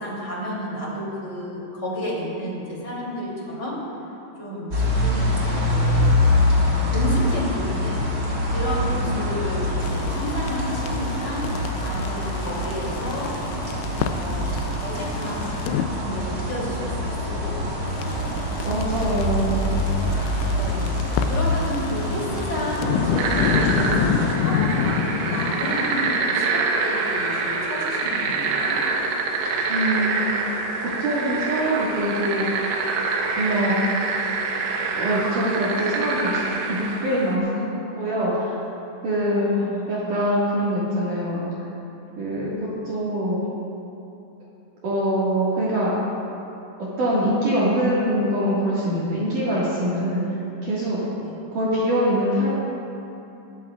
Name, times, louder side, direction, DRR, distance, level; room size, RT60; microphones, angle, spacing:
voice 1, 0.0-3.8 4.4-6.1 6.5-8.1 8.5-11.5 11.8-13.3 14.0-14.5 14.8-18.3 19.1-19.6 20.5-21.0 21.3-28.8 39.3-40.0 51.2-51.3, left 1 dB, 25° left, -5 dB, 3.0 m, -31 dB
sound 1, 4.7-24.3, left 1 dB, 30° right, 1.6 m, -25 dB
sound 2, 9.8-15.8 17.9-26.1, left 8 dB, 80° left, 2.7 m, -29 dB
voice 2, 18.6-19.6 29.7-30.3 31.0-32.5 33.3-33.8 34.9-38.6 39.0-41.4 42.2-43.4 44.8-45.9 46.8-50.2 50.6-51.0 51.5-52.5, equal, 55° right, -9 dB, 2.7 m, -24 dB
sound 3, 23.2-37.4, right 4 dB, 90° right, 3.6 m, -26 dB
21.5 x 13.5 x 2.4 m, 2.8 s
omnidirectional pair, 5.5 m